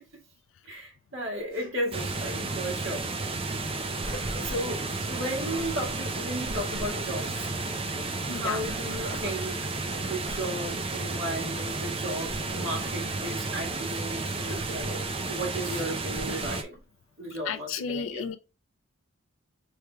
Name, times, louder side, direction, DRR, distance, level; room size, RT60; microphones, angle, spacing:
voice 1, 0.7-3.1 4.4-7.5 7.9-9.6 10.0-15.0 15.3-16.8 17.2-18.3, right 1 dB, 75° right, 1.7 m, -35 dB
sound 1, 1.4-1.7 2.2-2.4 2.7-2.9 3.4-5.1 5.4-7.5 8.4-10.6 11.0-11.2 12.2-13.3 13.8-14.0 14.5-15.1 15.6-15.9 16.1-16.8, equal, 45° right, 1.7 m, -42 dB
sound 2, 1.9-16.6, right 3 dB, 25° right, 0.5 m, -32 dB
voice 2, 8.3-8.6 17.5-18.4, left 6 dB, 75° left, 0.4 m, -33 dB
4.8 x 3.2 x 2.3 m
head